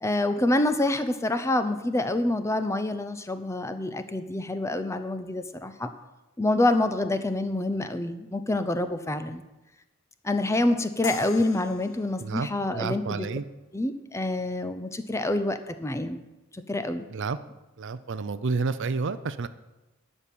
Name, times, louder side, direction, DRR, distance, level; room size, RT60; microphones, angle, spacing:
voice 1, 0.0-5.9 6.4-9.4 10.2-13.3 13.7-16.2 16.7-17.1, left 2 dB, 15° left, 9 dB, 0.6 m, -27 dB
sound 1, 11.0-14.1, left 7 dB, 65° left, 0.8 m, -43 dB
voice 2, 12.2-13.5 17.1-17.4 17.8-19.5, right 4 dB, 55° right, 14 dB, 0.5 m, -30 dB
11.5 x 5.4 x 8.5 m, 1.0 s
head